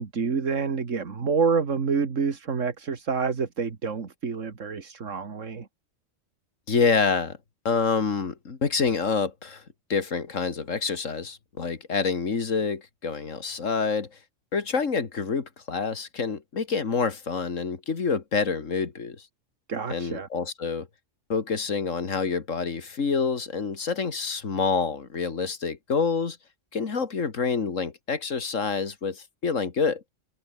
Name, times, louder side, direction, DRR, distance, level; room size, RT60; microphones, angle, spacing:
voice 1, 0.0-5.7 19.7-20.3, right 5 dB, 80° right, 2.3 m, -27 dB
voice 2, 6.7-7.4 7.6-9.6 9.9-14.2 14.5-19.3 19.9-20.9 21.3-26.4 26.7-30.0, left 5 dB, 85° left, 2.4 m, -27 dB
omnidirectional pair, 1.3 m